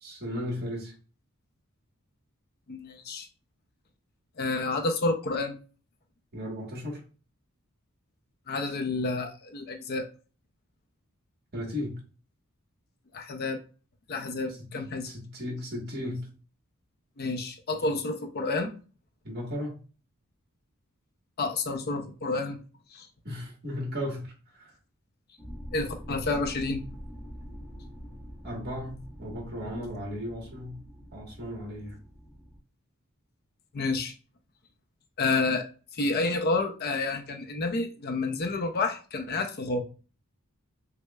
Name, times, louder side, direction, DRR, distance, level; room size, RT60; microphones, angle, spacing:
voice 1, 0.0-0.9 6.3-7.0 11.5-11.9 14.5-14.7 15.0-16.3 19.2-19.8 23.2-24.7 28.4-30.8 31.1-32.0, left 1 dB, 45° right, 1.3 m, -35 dB
voice 2, 2.7-3.3 4.4-5.5 8.5-10.1 13.1-13.6 14.1-15.1 17.2-18.7 21.4-22.6 22.9-23.1 25.7-26.8 33.7-34.1 35.2-35.6 35.9-39.8, left 3 dB, 45° left, 0.5 m, -29 dB
sound 1, 25.4-32.6, equal, 5° right, 0.9 m, -44 dB
6.1 x 2.1 x 2.2 m
head